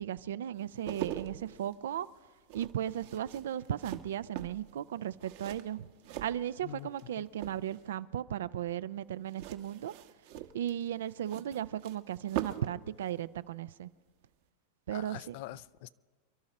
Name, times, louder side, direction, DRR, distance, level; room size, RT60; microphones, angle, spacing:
voice 1, 0.0-2.1 2.5-5.9 6.2-9.9 10.5-13.9 14.9-15.3, right 11 dB, 80° right, 0.5 m, -36 dB
sound 1, 0.6-7.0 7.3-8.0 9.3-12.8 13.0-13.2, right 12 dB, 60° right, 1.1 m, -42 dB
voice 2, 14.9-15.9, left 16 dB, 60° left, 0.4 m, -44 dB
28.5 x 11.5 x 4.3 m
hypercardioid pair, 115°, 0 cm